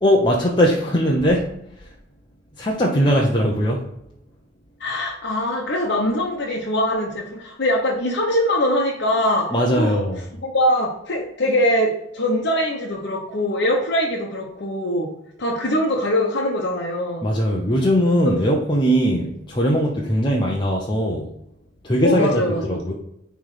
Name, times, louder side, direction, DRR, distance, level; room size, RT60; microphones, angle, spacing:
voice 1, 0.0-1.9 2.6-3.8 9.5-10.2 17.2-21.3 21.8-22.4 22.7-22.9, equal, 25° left, -2 dB, 0.9 m, -20 dB
voice 2, 4.8-10.0 10.4-15.1 15.4-17.3 18.2-18.4 22.0-22.8, left 1 dB, 60° left, -1 dB, 1.1 m, -22 dB
9.6 x 3.5 x 5.0 m, 0.80 s
head